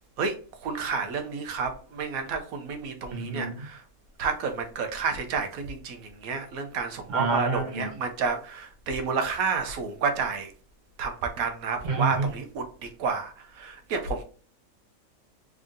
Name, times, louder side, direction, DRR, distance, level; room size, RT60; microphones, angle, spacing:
voice 1, 0.6-3.8 4.2-10.5 11.0-14.2, right 5 dB, 80° right, 1.1 m, -30 dB
voice 2, 3.1-3.6 7.1-7.9 11.8-12.3, right 4 dB, 35° right, 0.9 m, -28 dB
3.7 x 3.6 x 2.5 m
omnidirectional pair, 1.5 m